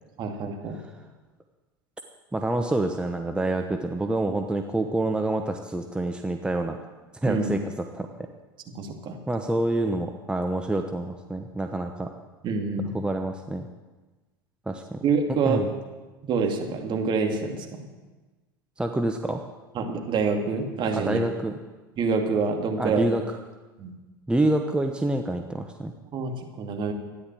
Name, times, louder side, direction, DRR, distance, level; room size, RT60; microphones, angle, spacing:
voice 1, 0.2-0.8 7.2-7.5 8.7-9.2 12.4-13.0 15.0-15.8 16.2-17.9 19.7-21.2 22.0-23.0 23.8-23.9 26.1-26.9, right 4 dB, 40° right, 3 dB, 2.5 m, -27 dB
voice 2, 2.3-6.8 7.2-8.1 9.3-12.1 12.9-13.7 14.7-15.0 15.4-15.7 18.8-19.4 20.9-21.5 22.8-23.2 24.3-25.9, right 2 dB, 10° right, 5 dB, 1.0 m, -27 dB
13.5 x 10.5 x 7.7 m, 1.2 s
hypercardioid pair, 85°, 12 cm